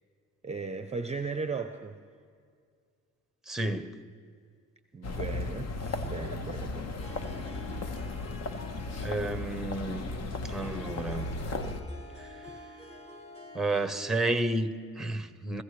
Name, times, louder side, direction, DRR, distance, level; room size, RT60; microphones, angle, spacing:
voice 1, 0.4-2.0 4.9-6.9, right 4 dB, 20° right, 8 dB, 0.6 m, -36 dB
voice 2, 3.5-3.9 9.0-10.1 10.4-11.4 12.2-12.3 13.5-15.6, right 2 dB, ahead, 10 dB, 0.9 m, -31 dB
sound 1, 5.0-11.8, left 3 dB, 60° left, 1.2 m, -35 dB
Harp, 6.8-14.7, left 1 dB, 20° left, 1.7 m, -49 dB
25.0 x 14.5 x 3.3 m, 2.2 s
cardioid pair, 90°, 30 cm